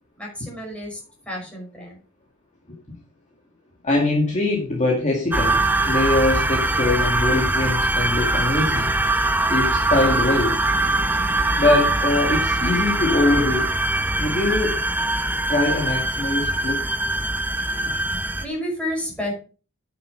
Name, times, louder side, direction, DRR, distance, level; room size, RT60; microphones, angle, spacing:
voice 1, 0.2-2.0 18.1-19.3, left 1 dB, 5° left, -2 dB, 5.6 m, -31 dB
voice 2, 3.8-5.6 5.8-8.9 9.5-10.5 11.6-13.6 14.2-14.8 15.5-16.9, left 2 dB, 35° left, -1 dB, 2.1 m, -22 dB
sound 1, 5.3-18.5, right 2 dB, 10° right, 0.7 m, -22 dB
9.4 x 6.9 x 5.3 m, 0.36 s
head